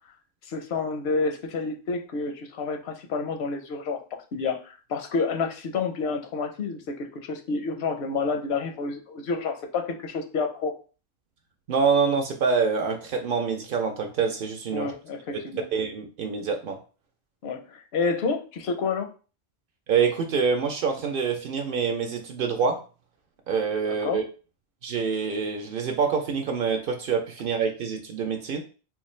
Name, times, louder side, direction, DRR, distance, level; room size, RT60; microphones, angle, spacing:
voice 1, 0.4-4.0 4.3-10.7 14.7-15.6 17.4-19.1 24.0-24.2, left 4 dB, 85° left, 5 dB, 0.9 m, -29 dB
voice 2, 11.7-14.9 15.7-16.8 19.9-22.8 23.5-24.2 24.8-28.6, right 5 dB, 65° right, 4 dB, 0.7 m, -26 dB
3.7 x 2.4 x 3.1 m, 0.36 s
omnidirectional pair, 1.1 m